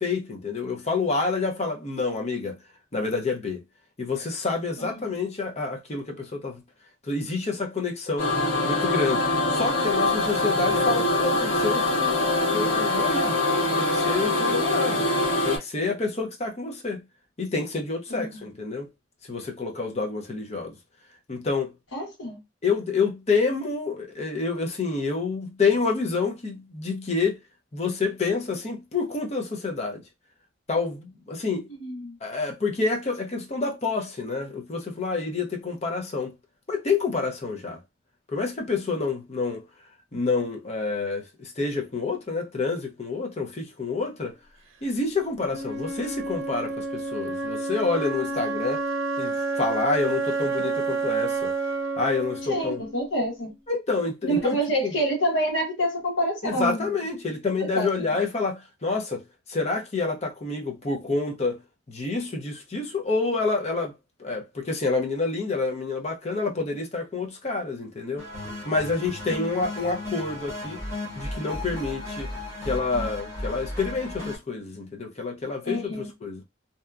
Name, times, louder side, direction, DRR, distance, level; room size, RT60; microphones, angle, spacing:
voice 1, 0.0-2.6 2.9-3.6 4.0-6.6 7.1-8.3 8.6-9.2 9.5-13.4 13.8-15.1 15.4-17.0 17.4-18.9 19.3-20.8 21.3-21.7 22.6-27.4 27.7-30.0 30.7-31.7 32.2-36.3 36.7-37.8 38.3-39.6 40.1-44.3 44.8-48.8 49.2-51.5 52.0-52.8 53.7-54.6 54.8-54.9 56.4-59.2 59.5-61.6 61.9-63.9 64.2-68.3 68.6-70.8 71.2-72.3 72.7-76.4, left 4 dB, 35° left, 0.6 m, -28 dB
voice 2, 4.8-5.2 18.1-18.5 21.9-22.4 31.7-32.2 52.5-53.5 54.2-57.1 57.7-58.1 69.3-69.6 75.6-76.1, equal, 85° left, 1.2 m, -28 dB
sound 1, 8.2-15.6, left 2 dB, 65° left, 1.5 m, -23 dB
Wind instrument woodwind instrument, 45.5-53.5, right 3 dB, 80° right, 0.6 m, -29 dB
sound 2, 68.2-74.4, left 1 dB, 15° left, 0.9 m, -35 dB
2.7 x 2.3 x 2.3 m
head